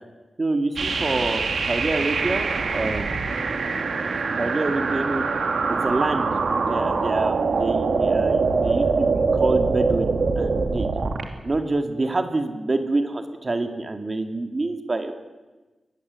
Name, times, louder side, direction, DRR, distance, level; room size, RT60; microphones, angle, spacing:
voice 1, 0.4-2.5 2.7-3.3 4.4-5.2 5.7-6.3 6.6-10.9 11.4-15.2, right 2 dB, 35° right, 6 dB, 2.0 m, -26 dB
sound 1, 0.8-11.2, right 4 dB, 75° right, 2.6 m, -23 dB
22.0 x 20.5 x 8.1 m, 1.2 s
wide cardioid pair, 135°, 0 cm